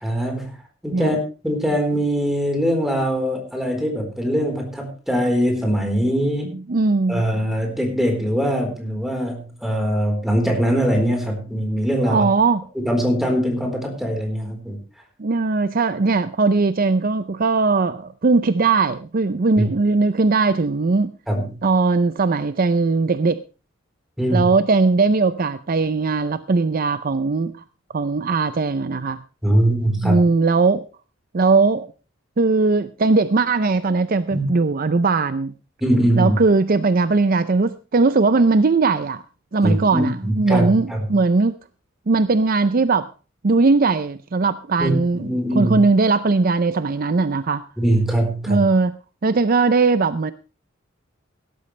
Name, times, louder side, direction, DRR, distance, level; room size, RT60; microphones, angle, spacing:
voice 1, 0.0-0.6 0.8-1.2 1.4-6.5 7.1-12.3 12.8-14.8 19.6-19.7 21.3-21.5 24.2-24.5 29.4-30.2 34.3-34.4 35.8-36.4 39.6-41.1 44.8-45.8 47.8-48.6, equal, ahead, 4.1 m, -22 dB
voice 2, 6.5-7.2 12.1-12.7 15.2-21.1 21.6-23.4 24.3-27.5 27.9-29.2 30.0-30.8 31.3-31.9 32.4-35.5 36.2-39.2 39.5-41.6 42.1-43.1 43.4-47.6 48.5-48.9 49.2-50.3, right 3 dB, 50° right, 0.5 m, -19 dB
17.0 x 12.5 x 3.3 m
head